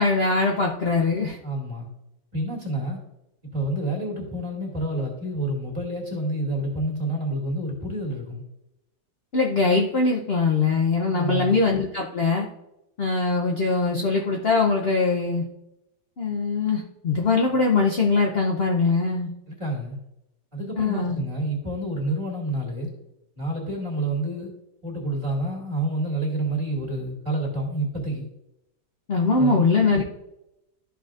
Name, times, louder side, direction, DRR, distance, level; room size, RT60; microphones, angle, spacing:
voice 1, 0.0-1.4 9.3-12.5 13.0-15.4 16.2-19.3 20.8-21.2 29.1-30.0, left 4 dB, 60° left, -1 dB, 0.6 m, -22 dB
voice 2, 1.4-1.9 2.3-3.0 3.5-8.4 11.1-11.6 19.5-20.0 20.5-22.9 23.4-24.5 24.8-28.3 29.4-29.6, right 1 dB, 15° right, -2 dB, 2.0 m, -28 dB
13.0 x 5.7 x 2.5 m, 0.87 s
omnidirectional pair, 2.1 m